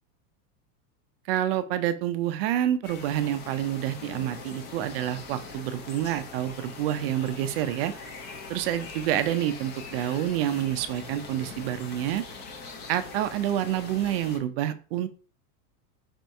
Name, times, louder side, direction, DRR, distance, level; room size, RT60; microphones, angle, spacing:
voice 1, 1.3-7.9 8.5-12.2 12.9-15.1, right 11 dB, 40° right, 11 dB, 0.4 m, -28 dB
sound 1, 2.8-14.4, left 4 dB, 25° left, 0.5 m, -42 dB
4.2 x 2.6 x 4.5 m, 0.39 s
supercardioid pair, 145°, 47 cm